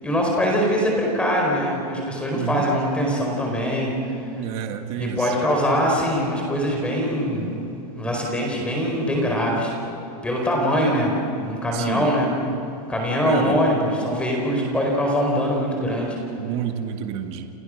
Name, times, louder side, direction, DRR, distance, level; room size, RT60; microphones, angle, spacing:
voice 1, 0.0-4.2 4.9-7.6 7.9-9.7 10.2-12.3 12.9-16.2, equal, 5° left, -1 dB, 4.5 m, -23 dB
voice 2, 2.3-2.7 4.4-5.3 11.7-12.1 13.2-13.6 16.4-17.5, right 10 dB, 30° right, 6 dB, 1.5 m, -30 dB
29.5 x 28.0 x 6.5 m, 2.9 s
supercardioid pair, 175°, 20 cm